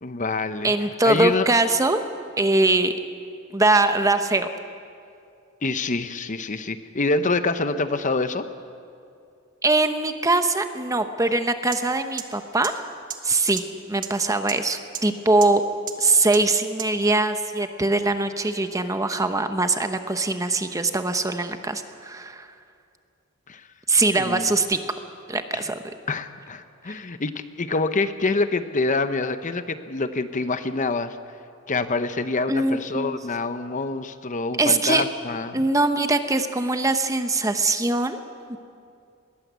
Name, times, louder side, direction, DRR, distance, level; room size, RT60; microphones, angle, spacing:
voice 1, 0.0-1.5 5.6-8.5 23.5-23.7 24.2-24.5 25.5-25.7 26.1-31.2 31.7-35.7, left 3 dB, 35° left, 10 dB, 0.8 m, -26 dB
voice 2, 0.6-2.0 2.4-2.9 3.5-4.5 9.6-12.8 13.2-15.6 16.0-22.5 23.9-24.8 25.3-25.8 32.5-33.2 34.6-35.0 35.5-38.2 38.5-38.6, right 2 dB, 15° right, 8 dB, 0.9 m, -22 dB
sound 1, 11.7-11.8 12.2-12.3 12.6-12.7 13.1-13.2 13.6-13.7 14.0-14.1 14.5-14.6 14.9-15.0 15.4-15.5 15.9-16.0 16.3-16.4 16.8-16.9, right 11 dB, 40° right, 1.6 m, -30 dB
21.0 x 18.5 x 8.2 m, 2.4 s
head